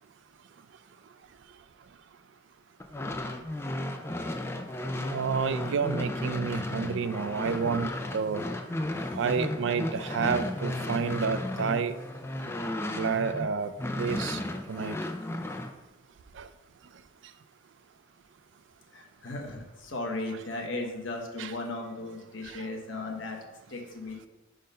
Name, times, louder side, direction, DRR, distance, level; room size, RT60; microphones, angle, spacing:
sound 1, 2.8-13.5 13.8-15.7, left 1 dB, 10° left, 0.3 m, -34 dB
voice 1, 5.1-8.4 9.2-11.9 13.0-13.7 14.0-14.4 14.7-15.0 16.4-16.5 21.4-21.5 22.5-22.7, right 6 dB, 65° right, 12 dB, 0.3 m, -30 dB
voice 2, 18.9-24.3, left 2 dB, 70° left, 2 dB, 1.0 m, -36 dB
5.1 x 3.8 x 5.4 m, 1.1 s
head